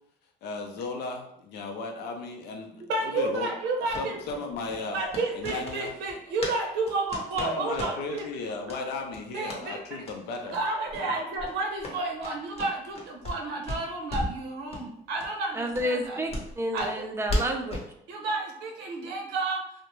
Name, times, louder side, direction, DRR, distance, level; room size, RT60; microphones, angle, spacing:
voice 1, 0.4-3.5 4.0-5.0 5.3-5.9 7.4-10.6, left 3 dB, 75° left, 3 dB, 0.5 m, -35 dB
voice 2, 2.9-4.2 4.9-8.3 9.3-10.0 10.5-16.2 16.7-17.0 18.1-19.6, right 3 dB, 90° right, 2 dB, 0.7 m, -31 dB
sound 1, 3.9-6.6 6.8-8.3 8.7-8.8 9.1-9.6 10.0-10.2 10.5-10.6 10.9-11.1 11.4-13.4 13.7-14.4 14.7-14.9 15.2-15.3 15.7-17.9, left 1 dB, 35° left, 0.7 m, -35 dB
voice 3, 15.5-17.8, equal, 15° right, 3 dB, 0.4 m, -30 dB
2.5 x 2.0 x 3.0 m, 0.74 s
cardioid pair, 110°, 17 cm